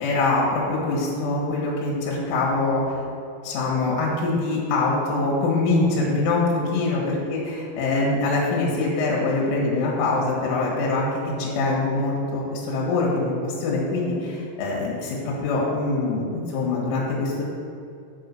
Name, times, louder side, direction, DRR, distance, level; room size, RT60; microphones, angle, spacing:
voice 1, 0.0-3.0 3.4-17.4, left 3 dB, 80° left, -3 dB, 3.7 m, -24 dB
9.0 x 3.9 x 5.9 m, 2.6 s
omnidirectional pair, 5.9 m